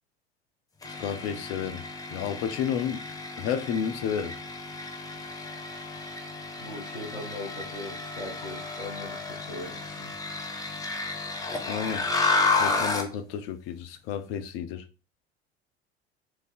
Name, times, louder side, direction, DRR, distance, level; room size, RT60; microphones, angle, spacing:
sound 1, 0.8-13.1, left 3 dB, 10° left, 0.9 m, -32 dB
voice 1, 0.9-1.8 2.1-3.0 3.4-4.4 11.7-12.1 12.5-14.8, left 8 dB, 45° left, 0.6 m, -31 dB
voice 2, 6.6-10.1, left 1 dB, 85° left, 1.0 m, -40 dB
2.7 x 2.6 x 3.9 m
figure-of-eight pair, 70°, 32 cm